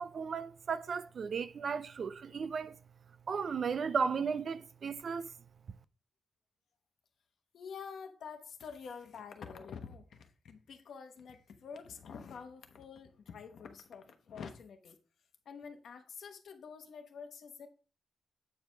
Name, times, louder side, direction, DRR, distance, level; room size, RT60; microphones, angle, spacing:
voice 1, 0.0-2.8 3.3-5.3, right 6 dB, 45° right, 0.4 m, -35 dB
voice 2, 7.5-15.0 15.4-17.7, left 6 dB, 65° left, 1.1 m, -47 dB
8.5 x 4.8 x 3.4 m
wide cardioid pair, 175°, 0 cm